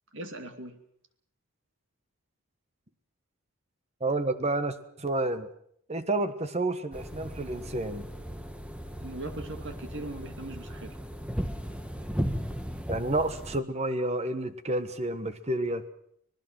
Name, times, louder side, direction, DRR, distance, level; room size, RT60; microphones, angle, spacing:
voice 1, 0.1-0.8 9.0-11.0, right 2 dB, 55° right, 7 dB, 2.5 m, -40 dB
voice 2, 4.0-5.5 5.9-8.1 12.9-15.9, right 2 dB, 30° right, 10 dB, 1.4 m, -30 dB
sound 1, 6.9-13.6, equal, 5° right, 1.1 m, -36 dB
25.5 x 19.0 x 6.2 m, 0.67 s
head